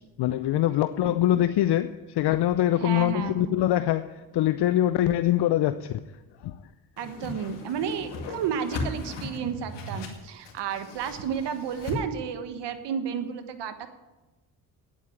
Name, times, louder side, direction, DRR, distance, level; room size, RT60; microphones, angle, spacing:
voice 1, 0.2-5.9 6.4-6.6, left 13 dB, 70° left, 0.6 m, -24 dB
voice 2, 2.8-3.6 7.0-13.9, right 7 dB, 80° right, 1.4 m, -32 dB
Whoosh swoosh swish, 7.0-12.0, left 3 dB, 90° left, 2.2 m, -37 dB
9.6 x 8.6 x 9.8 m
cardioid pair, 70°, 41 cm